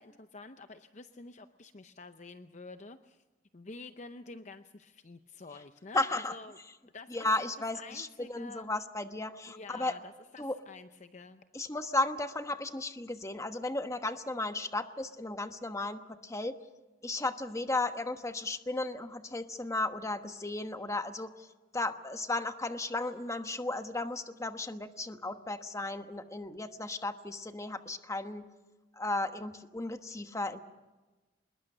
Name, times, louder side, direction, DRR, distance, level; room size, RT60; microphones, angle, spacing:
voice 1, 0.0-3.2 3.5-6.6 6.9-7.3 7.7-8.7 9.5-11.4, left 3 dB, 40° left, 9 dB, 0.7 m, -49 dB
voice 2, 5.9-6.3 7.1-9.9 10.4-10.6 11.5-16.6 17.0-21.5 21.7-28.5 28.9-30.6, left 2 dB, 15° left, 8 dB, 1.1 m, -34 dB
25.5 x 21.0 x 6.7 m, 1.2 s
head